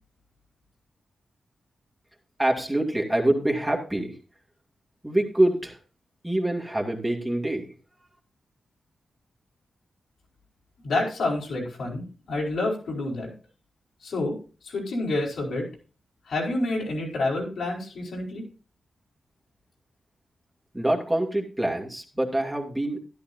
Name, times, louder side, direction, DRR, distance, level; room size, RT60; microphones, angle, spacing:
voice 1, 2.4-4.1 5.0-5.8 6.2-7.7 20.7-23.0, right 1 dB, 10° right, 0 dB, 2.3 m, -25 dB
voice 2, 10.8-13.3 14.0-14.4 14.6-15.7 16.3-18.4, left 2 dB, 80° left, -1 dB, 4.5 m, -28 dB
13.5 x 11.5 x 2.7 m, 0.35 s
cardioid pair, 80°, 0 cm